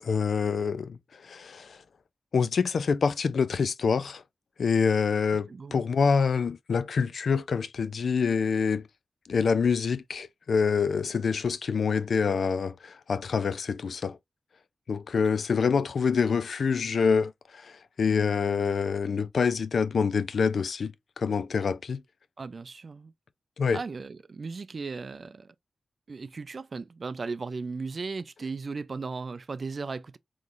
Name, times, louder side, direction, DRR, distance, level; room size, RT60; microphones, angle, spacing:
voice 1, 0.0-1.8 2.3-4.2 4.6-8.9 9.3-14.2 14.9-22.0 23.6-23.8, left 5 dB, 80° left, 0.3 m, -26 dB
voice 2, 22.4-23.1 23.7-25.5 26.1-30.2, right 4 dB, 60° right, 0.3 m, -36 dB
3.7 x 3.1 x 2.4 m
cardioid pair, 60°, 0 cm